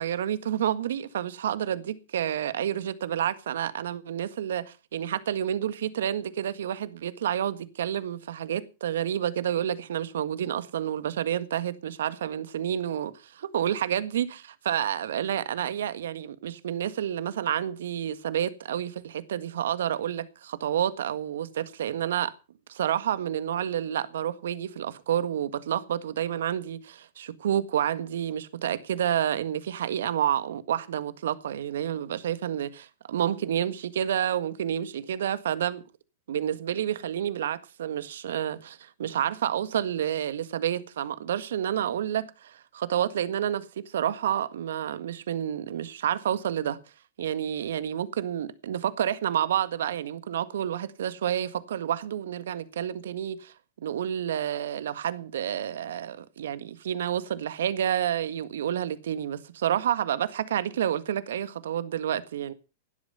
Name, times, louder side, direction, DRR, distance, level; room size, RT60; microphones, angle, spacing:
voice 1, 0.0-22.3 22.7-35.8 36.3-46.8 47.2-53.5 53.8-62.5, right 10 dB, 70° right, 1.7 m, -29 dB
17.0 x 12.0 x 5.5 m
hypercardioid pair, 105°, 0 cm